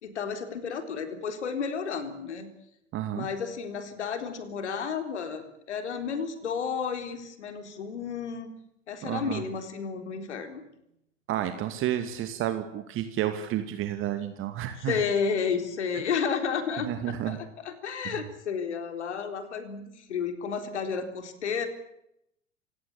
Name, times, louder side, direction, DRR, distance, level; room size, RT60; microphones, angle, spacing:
voice 1, 0.0-2.5 3.2-8.5 8.9-10.6 14.7-17.4 17.6-21.7, left 6 dB, 65° left, 8 dB, 4.1 m, -32 dB
voice 2, 2.9-3.3 9.0-9.4 11.3-15.0 16.9-17.4, right 11 dB, 35° right, 8 dB, 2.5 m, -31 dB
29.5 x 17.5 x 8.5 m, 0.79 s
figure-of-eight pair, 90°, 37 cm